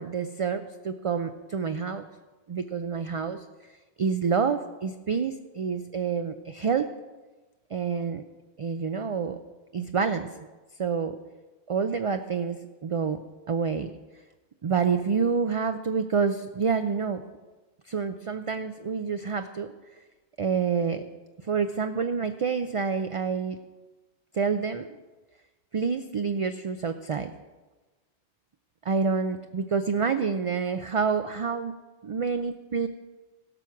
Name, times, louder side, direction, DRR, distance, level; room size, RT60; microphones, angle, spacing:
voice 1, 0.0-2.1 2.5-3.4 4.0-6.9 7.7-8.2 8.6-9.4 9.7-10.3 10.8-11.2 11.7-13.2 13.5-13.9 14.6-17.2 17.9-19.7 20.4-21.0 21.5-23.6 24.3-24.9 25.7-27.3 28.8-31.8 32.0-32.9, right 5 dB, 45° right, 8 dB, 0.4 m, -28 dB
16.5 x 6.2 x 5.8 m, 1.2 s
omnidirectional pair, 1.1 m